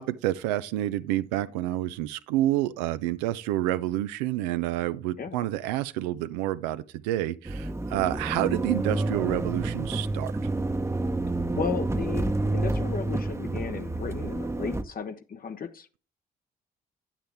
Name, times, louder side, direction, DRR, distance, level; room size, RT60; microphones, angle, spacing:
voice 1, 0.0-10.3, right 14 dB, 85° right, 0.4 m, -28 dB
sound 1, 7.4-14.8, right 2 dB, 15° right, 0.8 m, -29 dB
voice 2, 11.6-15.9, left 6 dB, 45° left, 0.8 m, -34 dB
8.8 x 7.3 x 3.4 m
hypercardioid pair, 45°, 21 cm